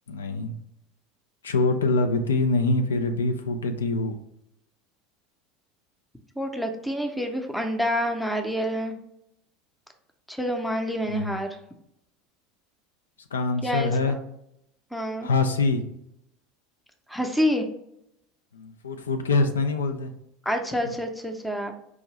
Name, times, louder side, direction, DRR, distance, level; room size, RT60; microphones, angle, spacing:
voice 1, 0.1-0.5 1.4-4.2 11.1-11.4 13.3-14.2 15.2-15.8 18.5-20.1, left 3 dB, 75° left, 6 dB, 0.4 m, -24 dB
voice 2, 6.4-9.0 10.3-11.6 13.6-14.2 14.9-15.3 17.1-17.6 20.5-21.7, equal, 5° left, 4 dB, 0.6 m, -27 dB
4.8 x 2.6 x 3.1 m, 0.78 s
figure-of-eight pair, 75°, 0 cm